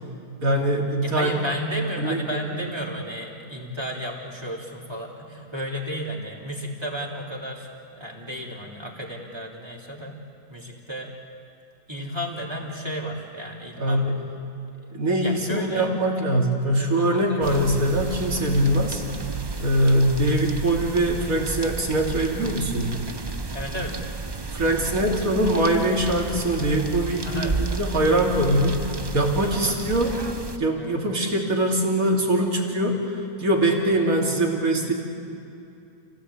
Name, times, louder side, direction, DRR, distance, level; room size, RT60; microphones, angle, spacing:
voice 1, 0.4-1.3 2.0-2.2 13.8-14.2 14.9-19.0 19.6-23.0 24.5-28.8 29.1-30.1 30.6-34.9, right 1 dB, 55° right, 0 dB, 3.2 m, -22 dB
voice 2, 1.0-10.2 10.5-11.1 11.9-14.0 15.0-15.9 16.3-16.4 16.8-17.7 23.5-24.0 24.5-25.5 27.2-27.6 29.5-29.8 30.7-30.9 33.9-34.0, equal, 15° right, -2 dB, 3.1 m, -33 dB
sound 1, 17.4-30.6, right 3 dB, 35° right, 0.4 m, -33 dB
29.0 x 16.5 x 8.4 m, 2.7 s
omnidirectional pair, 1.7 m